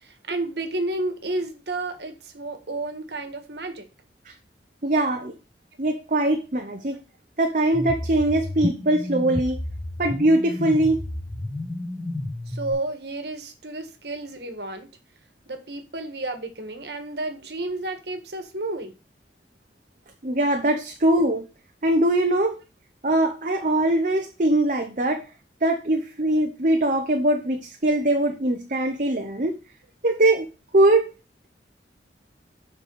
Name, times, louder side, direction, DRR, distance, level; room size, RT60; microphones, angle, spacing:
voice 1, 0.0-3.9 12.5-14.9 15.5-18.9 30.0-30.1, right 2 dB, 70° right, 1.6 m, -31 dB
voice 2, 4.8-5.3 5.8-7.0 7.4-9.6 10.0-11.0 20.2-21.4 21.8-22.6 23.0-25.3 25.6-29.5 30.0-30.5 30.7-31.1, right 1 dB, 45° right, 0.9 m, -22 dB
sound 1, 7.7-12.7, left 1 dB, 45° left, 3.8 m, -31 dB
7.4 x 4.9 x 4.7 m
head